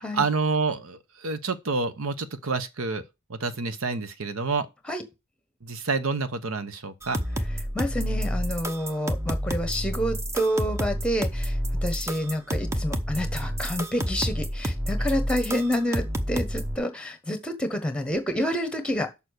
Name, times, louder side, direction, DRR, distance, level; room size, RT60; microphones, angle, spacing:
voice 1, 0.1-3.0 3.3-4.7 5.6-7.2, right 4 dB, 75° right, 0.9 m, -28 dB
sound 1, 7.0-16.8, equal, 15° right, 0.7 m, -29 dB
voice 2, 7.7-11.5 11.8-19.1, equal, 5° left, 1.2 m, -28 dB
6.8 x 5.4 x 6.5 m
head